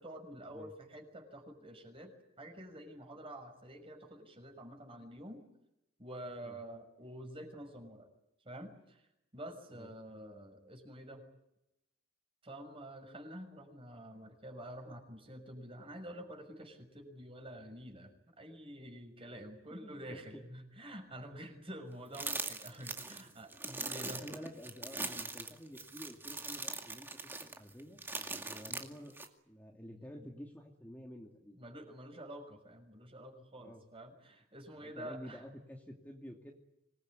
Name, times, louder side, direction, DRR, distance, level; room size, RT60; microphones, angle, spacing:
voice 1, 0.0-5.4 6.0-8.1 8.4-11.2 12.4-24.4 28.7-28.8 30.0-30.3 31.5-35.4, right 1 dB, 25° right, 4 dB, 6.1 m, -48 dB
voice 2, 19.8-20.4 23.1-23.2 23.9-27.1 27.6-28.0 28.5-29.1 29.5-31.6 33.6-33.8 34.8-36.5, equal, 10° left, 0 dB, 2.6 m, -50 dB
sound 1, 22.1-29.3, right 3 dB, 10° right, 2.2 m, -41 dB
26.0 x 20.5 x 9.7 m, 0.84 s
head